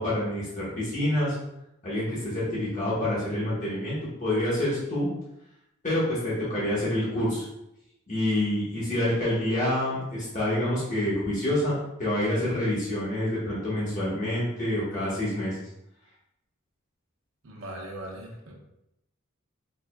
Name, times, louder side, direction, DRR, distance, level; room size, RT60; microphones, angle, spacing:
voice 1, 0.0-1.4 1.8-5.1 5.8-7.5 8.1-15.6, left 1 dB, 35° left, -9 dB, 1.2 m, -27 dB
voice 2, 17.4-18.5, right 1 dB, 65° right, -2 dB, 0.9 m, -39 dB
4.3 x 3.5 x 2.2 m, 0.84 s
head